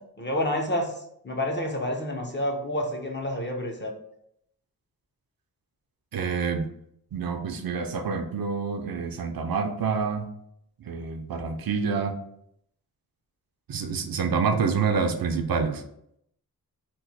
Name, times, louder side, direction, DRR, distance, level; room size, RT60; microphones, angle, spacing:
voice 1, 0.2-0.9 1.2-3.9, left 1 dB, 30° left, 1 dB, 0.6 m, -28 dB
voice 2, 6.1-6.7 7.1-10.3 10.8-12.2 13.7-15.8, right 5 dB, 70° right, 6 dB, 0.5 m, -27 dB
3.0 x 2.1 x 4.1 m, 0.72 s
wide cardioid pair, 80°, 37 cm